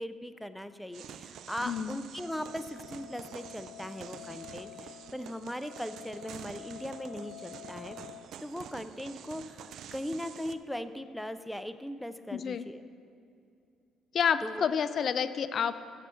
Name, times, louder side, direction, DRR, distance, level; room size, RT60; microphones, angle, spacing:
voice 1, 0.0-8.0 8.4-12.8 14.4-14.6, equal, 5° left, 11 dB, 0.5 m, -39 dB
sound 1, 0.9-10.5, right 8 dB, 70° right, 0.4 m, -48 dB
voice 2, 1.6-2.0 12.3-12.7 14.1-15.8, left 7 dB, 55° left, 13 dB, 0.4 m, -29 dB
sound 2, 2.3-8.2, left 11 dB, 85° left, 0.9 m, -49 dB
7.4 x 6.7 x 7.0 m, 2.4 s
supercardioid pair, 65°, 0 cm